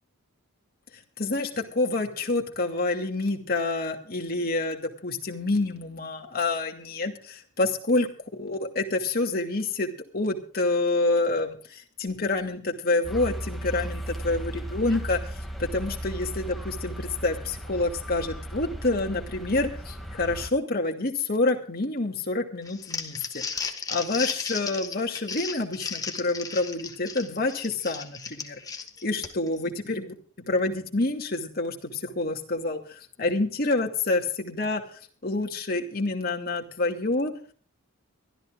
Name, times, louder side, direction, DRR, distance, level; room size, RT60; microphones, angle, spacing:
voice 1, 1.2-15.2 15.6-28.6 29.0-34.8 35.2-37.3, left 2 dB, 45° left, 2 dB, 2.6 m, -28 dB
sound 1, 13.0-20.5, right 1 dB, ahead, 2.4 m, -36 dB
Crumpling crinkling, 22.7-29.6, left 5 dB, 15° left, 1.7 m, -35 dB
24.5 x 13.5 x 2.5 m, 0.43 s
head